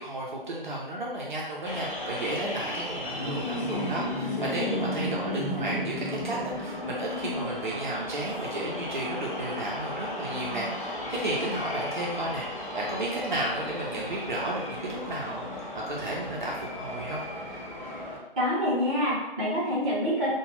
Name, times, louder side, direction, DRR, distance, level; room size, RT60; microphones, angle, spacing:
voice 1, 0.0-15.5 15.9-17.2, right 1 dB, 50° right, -4 dB, 0.6 m, -33 dB
sound 1, 1.7-18.2, left 1 dB, 35° left, 0.6 m, -35 dB
voice 2, 18.4-20.3, equal, 15° right, -11 dB, 0.8 m, -26 dB
2.4 x 2.2 x 3.2 m, 0.95 s
figure-of-eight pair, 140°, 30 cm